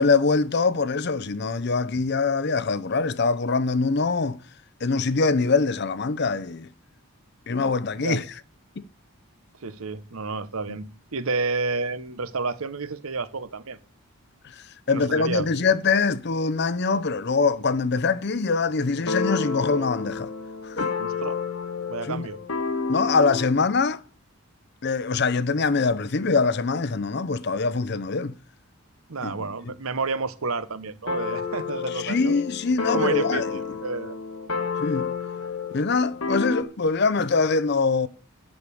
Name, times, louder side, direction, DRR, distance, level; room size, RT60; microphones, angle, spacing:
voice 1, 0.0-4.4 4.8-6.7 7.5-8.2 8.8-8.9 14.5-20.3 20.7-20.9 22.1-22.3 22.9-24.0 24.8-28.3 29.2-29.5 32.0-33.5 34.8-35.1 35.7-38.1, left 4 dB, 50° left, 0.6 m, -23 dB
voice 2, 9.6-13.8 14.9-15.5 21.0-21.4 21.9-22.4 29.1-32.4 32.9-34.2, right 4 dB, 75° right, 1.0 m, -30 dB
sound 1, 18.9-23.6 31.1-36.6, left 5 dB, 80° left, 1.5 m, -30 dB
9.7 x 6.6 x 8.4 m
head